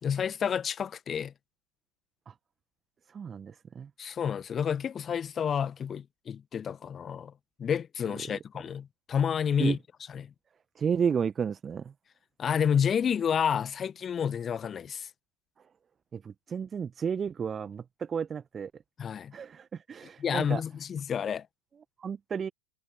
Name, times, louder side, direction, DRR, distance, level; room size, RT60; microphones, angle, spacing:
voice 1, 0.0-1.3 4.0-7.3 7.6-9.8 10.1-10.3 12.4-15.1 19.0-19.3 20.2-21.5, left 8 dB, 20° left, 1.6 m, -30 dB
voice 2, 3.1-3.9 9.6-9.8 10.7-11.9 16.1-18.7 19.3-20.6 22.0-22.5, right 7 dB, 20° right, 1.4 m, -32 dB
figure-of-eight pair, 90°, 0 cm